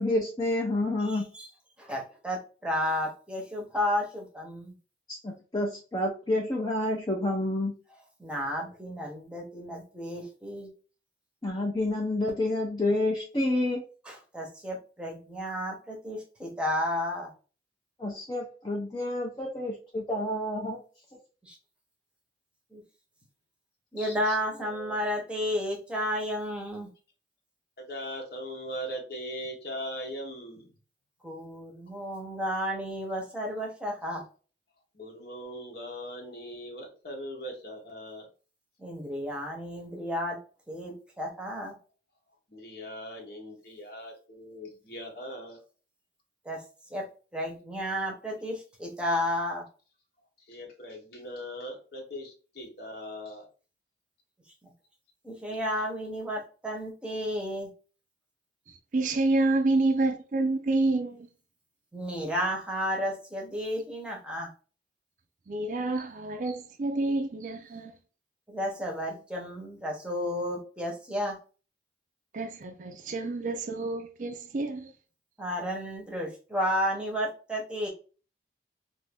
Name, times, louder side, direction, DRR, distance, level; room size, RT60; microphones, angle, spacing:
voice 1, 0.0-1.3 5.1-7.8 11.4-13.8 18.0-20.8, left 1 dB, 25° left, 0.6 m, -29 dB
voice 2, 1.1-1.5 1.8-4.7 8.2-10.7 14.0-17.3 21.4-21.6 22.7-22.8 23.9-26.9 31.2-34.2 38.8-40.4 40.7-41.8 46.4-46.6 46.9-49.6 54.6-54.7 55.2-57.7 61.9-64.5 68.5-71.4 75.4-77.9, equal, 5° right, 0.9 m, -32 dB
voice 3, 24.0-24.9 27.8-30.7 34.9-38.3 42.5-45.6 50.4-53.5 55.5-55.6, equal, 60° left, 1.0 m, -40 dB
voice 4, 58.9-61.3 65.5-67.9 72.3-74.9, right 2 dB, 45° right, 0.4 m, -28 dB
2.7 x 2.6 x 3.3 m
head